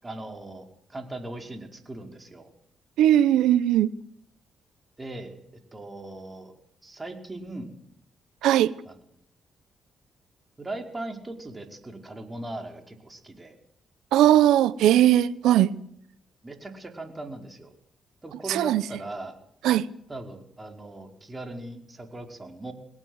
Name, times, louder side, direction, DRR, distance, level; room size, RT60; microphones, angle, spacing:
voice 1, 0.0-2.5 5.0-5.4 5.7-6.5 6.8-7.7 8.8-9.0 10.6-13.5 16.4-17.7 18.2-19.4 20.1-22.7, right 2 dB, 25° right, 5.1 m, -39 dB
voice 2, 3.0-3.9 8.4-8.7 14.1-15.7 18.5-18.8 19.6-19.9, right 12 dB, 80° right, 0.8 m, -19 dB
22.0 x 18.0 x 8.1 m
supercardioid pair, 50°, 0 cm